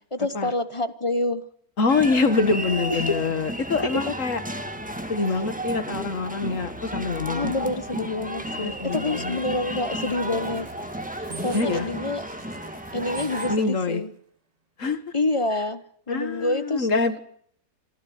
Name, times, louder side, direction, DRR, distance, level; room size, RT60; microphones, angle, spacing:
voice 1, 0.1-1.4 2.9-3.0 3.8-4.0 7.3-10.7 11.2-12.3 12.9-14.1 15.1-16.9, left 2 dB, 25° left, 12 dB, 0.7 m, -27 dB
voice 2, 1.8-4.4 5.1-7.7 8.6-9.4 11.5-11.9 13.5-14.0 14.8-15.0 16.1-17.2, left 4 dB, 45° left, 11 dB, 2.0 m, -25 dB
sound 1, 1.9-13.6, right 1 dB, 5° right, 1.5 m, -33 dB
sound 2, 10.0-13.8, right 4 dB, 30° right, 0.9 m, -43 dB
25.5 x 15.5 x 9.3 m, 0.64 s
omnidirectional pair, 2.1 m